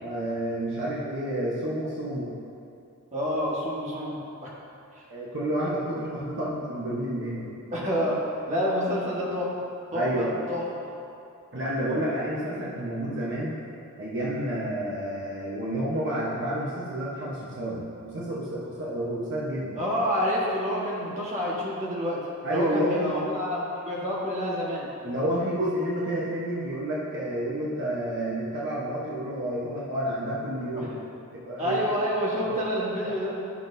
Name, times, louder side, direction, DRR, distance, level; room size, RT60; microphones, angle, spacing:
voice 1, 0.0-2.3 5.1-7.5 9.9-10.3 11.5-13.6 14.0-19.8 22.4-23.2 25.0-30.9 31.3-31.8 33.0-33.1, right 1 dB, 55° right, -7 dB, 1.1 m, -30 dB
voice 2, 3.1-4.6 4.9-5.0 7.7-8.2 8.5-9.5 9.9-10.6 19.8-22.2 22.5-24.9 30.7-31.0 31.6-33.3, equal, 30° right, -6 dB, 1.5 m, -28 dB
11.0 x 6.0 x 2.7 m, 2.5 s
head